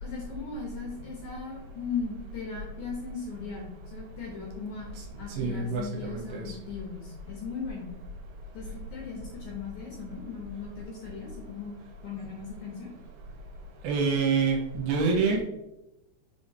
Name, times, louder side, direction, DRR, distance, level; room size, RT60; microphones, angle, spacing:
voice 1, 0.0-4.9 5.2-7.9 8.5-12.9, left 5 dB, 70° left, 0 dB, 1.9 m, -38 dB
voice 2, 5.4-6.6 13.8-15.4, right 4 dB, 75° right, 0 dB, 2.6 m, -27 dB
6.6 x 3.5 x 4.2 m, 0.91 s
omnidirectional pair, 4.9 m